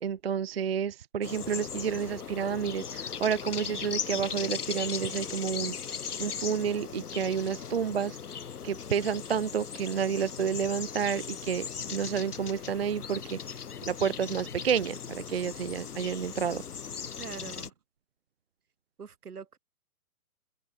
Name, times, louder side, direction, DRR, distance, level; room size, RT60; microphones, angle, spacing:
voice 1, 0.0-5.8 6.2-8.2 8.6-13.4 13.9-16.6, right 7 dB, 45° right, 0.6 m, -30 dB
sound 1, 1.2-17.7, left 7 dB, 80° left, 2.5 m, -38 dB
voice 2, 17.2-17.7 19.0-19.6, right 6 dB, 80° right, 6.5 m, -43 dB
open air
hypercardioid pair, 170°, 45 cm